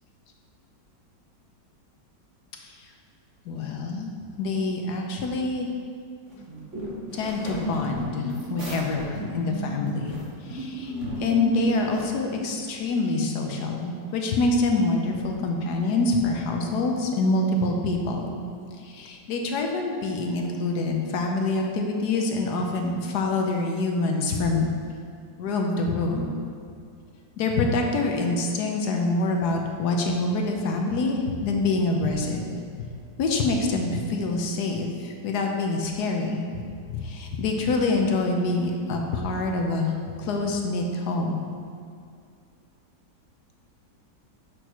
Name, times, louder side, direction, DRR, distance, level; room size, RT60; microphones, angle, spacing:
voice 1, 2.6-2.9 3.5-4.1 4.4-5.7 7.1-10.1 10.4-18.3 18.7-24.7 25.4-26.4 27.4-32.4 32.8-32.9 33.2-36.6 36.9-41.4, left 3 dB, 70° left, 2 dB, 1.2 m, -26 dB
sound 1, 6.3-12.0, right 1 dB, 45° right, 1.8 m, -34 dB
8.1 x 6.1 x 3.0 m, 2.4 s
omnidirectional pair, 1.9 m